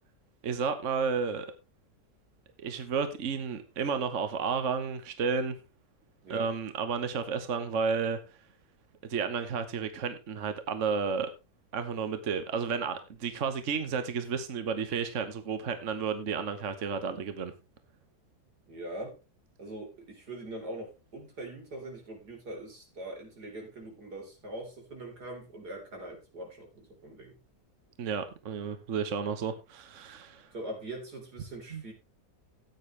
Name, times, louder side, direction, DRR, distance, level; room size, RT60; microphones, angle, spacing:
voice 1, 0.4-1.5 2.6-5.5 6.3-8.2 9.1-11.3 11.7-17.5 28.0-30.5 31.7-31.8, right 5 dB, 55° right, 1.4 m, -32 dB
voice 2, 18.7-19.2 19.6-27.4 30.5-31.9, right 1 dB, 85° right, 4.5 m, -42 dB
14.5 x 9.3 x 3.3 m
omnidirectional pair, 1.7 m